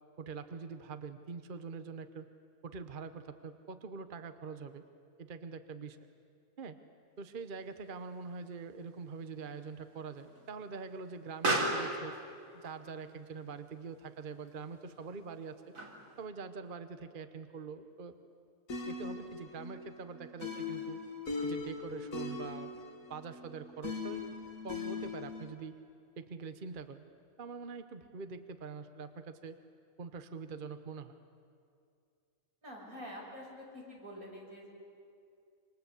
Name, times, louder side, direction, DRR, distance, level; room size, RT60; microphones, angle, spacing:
voice 1, 0.2-2.3 2.6-4.8 5.2-6.0 6.6-6.8 7.2-12.2 12.5-15.6 16.2-18.1 18.9-21.0 21.4-22.7 23.1-24.2 24.6-25.8 26.2-27.1 27.4-29.6 30.0-31.2, right 5 dB, 40° right, 9 dB, 1.1 m, -44 dB
Explosion, 7.2-16.3, right 2 dB, 75° right, 3.9 m, -40 dB
sound 1, 18.7-25.5, left 4 dB, 75° left, 2.6 m, -40 dB
voice 2, 32.6-34.7, equal, 90° right, -2 dB, 6.8 m, -47 dB
27.5 x 25.5 x 8.3 m, 2.4 s
omnidirectional pair, 1.4 m